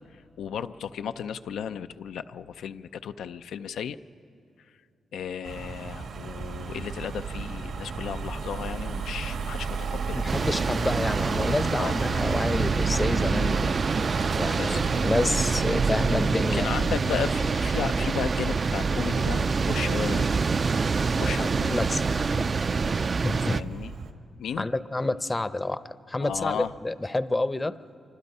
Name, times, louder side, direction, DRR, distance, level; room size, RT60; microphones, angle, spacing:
voice 1, 0.4-4.0 5.1-10.3 11.8-12.0 14.5-15.1 16.3-20.4 21.1-21.8 23.5-23.9 24.4-24.7 26.2-26.7, left 8 dB, 85° left, 10 dB, 0.5 m, -34 dB
Car passing by / Engine, 5.4-24.1, right 5 dB, 75° right, 1.8 m, -32 dB
voice 2, 10.1-13.7 14.4-16.7 21.4-22.5 23.2-23.8 24.6-25.8 26.1-27.8, left 2 dB, 20° left, 14 dB, 0.7 m, -29 dB
sound 1, 10.3-23.6, right 4 dB, 45° right, 0.5 m, -26 dB
26.0 x 24.5 x 5.5 m, 2.4 s
cardioid pair, 80°, 0 cm